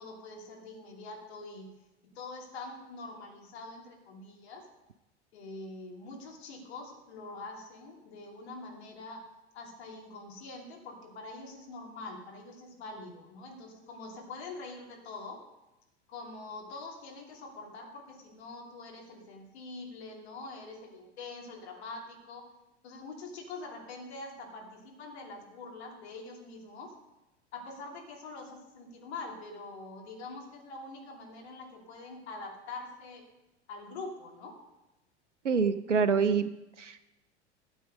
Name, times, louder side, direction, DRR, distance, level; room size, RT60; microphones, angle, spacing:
voice 1, 0.0-1.7 2.0-4.6 5.3-9.2 9.5-15.4 16.1-22.5 22.8-26.9 27.5-33.3 33.7-34.5, left 3 dB, 65° left, 1 dB, 2.8 m, -44 dB
voice 2, 35.4-36.5 36.8-37.0, right 5 dB, 90° right, 12 dB, 0.6 m, -26 dB
12.5 x 8.1 x 5.1 m, 0.95 s
figure-of-eight pair, 85°, 35 cm